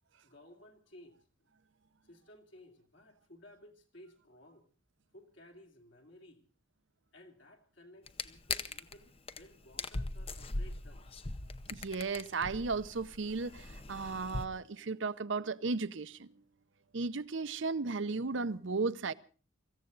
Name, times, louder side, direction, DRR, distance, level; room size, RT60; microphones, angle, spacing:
voice 1, 0.2-1.3 2.0-4.7 5.1-6.4 7.1-11.1, left 1 dB, 65° left, 3.0 m, -57 dB
sound 1, 8.1-9.0 9.3-9.4 9.7-14.5, left 3 dB, 30° left, 0.7 m, -40 dB
voice 2, 11.7-16.3 16.9-19.1, right 4 dB, 65° right, 0.7 m, -35 dB
25.0 x 15.0 x 3.9 m
head